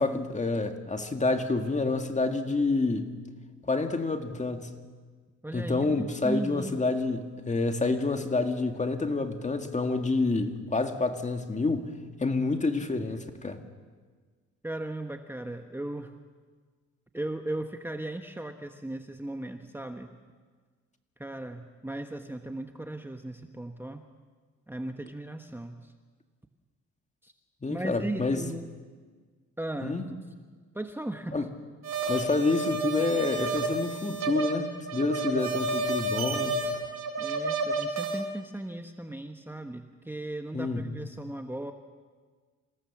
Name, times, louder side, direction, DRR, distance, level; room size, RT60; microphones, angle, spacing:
voice 1, 0.0-3.2 3.7-4.7 5.5-11.9 12.2-13.6 27.6-28.5 29.8-30.0 31.3-31.5 32.1-36.6 40.5-41.0, left 3 dB, 25° left, 6 dB, 2.0 m, -28 dB
voice 2, 5.4-6.9 14.6-16.2 17.1-20.1 21.2-24.0 24.7-25.9 27.2-27.3 27.7-28.6 29.6-30.0 30.7-31.3 35.3-35.5 37.2-41.7, right 1 dB, 5° right, 6 dB, 1.2 m, -37 dB
sound 1, 31.8-38.2, right 2 dB, 60° right, 4.6 m, -30 dB
27.0 x 17.0 x 7.3 m, 1.5 s
cardioid pair, 90°, 30 cm